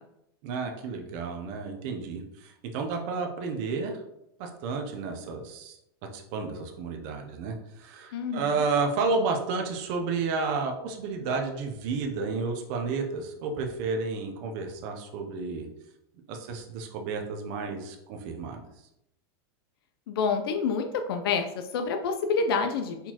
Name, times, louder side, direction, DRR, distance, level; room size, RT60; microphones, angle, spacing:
voice 1, 0.4-4.0 4.4-5.8 6.1-15.7 16.3-18.6, right 4 dB, 40° right, 3 dB, 0.6 m, -31 dB
voice 2, 8.1-8.6 20.1-23.1, left 5 dB, 65° left, 6 dB, 0.5 m, -28 dB
4.3 x 3.9 x 2.9 m, 0.83 s
supercardioid pair, 165°, 13 cm